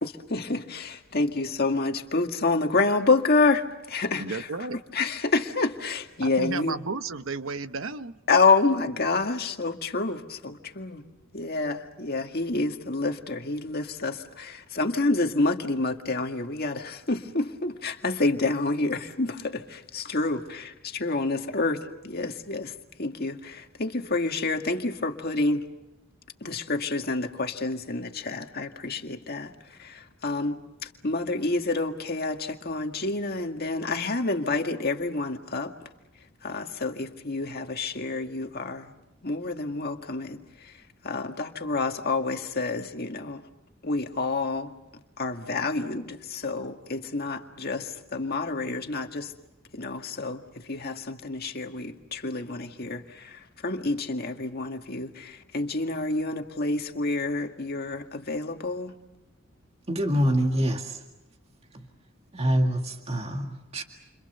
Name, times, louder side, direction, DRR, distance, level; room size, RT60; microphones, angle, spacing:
voice 1, 0.0-6.8 8.3-11.0 11.3-22.7 23.0-25.6 26.4-35.7 36.4-38.9 39.2-43.4 43.8-44.7 45.2-49.3 49.7-59.0, left 3 dB, 50° left, 4 dB, 1.9 m, -28 dB
voice 2, 4.2-4.8 6.2-8.2, right 4 dB, 70° right, 11 dB, 1.0 m, -33 dB
voice 3, 59.9-61.0 61.7-61.9 62.3-63.8, equal, 30° right, 3 dB, 2.0 m, -26 dB
29.5 x 26.5 x 6.9 m, 0.93 s
head